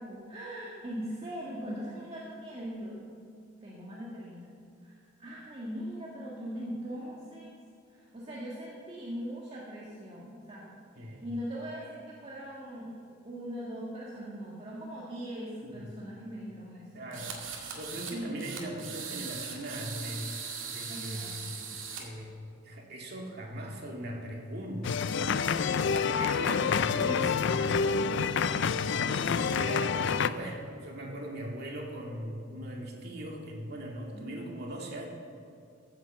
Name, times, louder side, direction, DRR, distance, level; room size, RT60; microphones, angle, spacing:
voice 1, 0.0-3.1 3.6-4.5 4.8-7.6 7.9-10.8 11.2-16.9 18.1-18.4 20.9-21.6 25.7-26.4 29.1-29.7 34.1-34.4, equal, 30° right, -6 dB, 1.8 m, -41 dB
voice 2, 10.9-11.3 15.6-15.9 16.9-17.4 17.7-20.4 20.6-21.6 22.0-22.4 22.6-25.1 25.4-28.3 29.2-35.1, equal, 55° right, -1 dB, 2.4 m, -39 dB
sound 1, 17.1-18.1 18.4-22.0, right 6 dB, 80° right, 2.2 m, -40 dB
sound 2, 24.8-30.3, left 6 dB, 60° left, 0.4 m, -28 dB
14.0 x 7.5 x 7.8 m, 2.5 s
head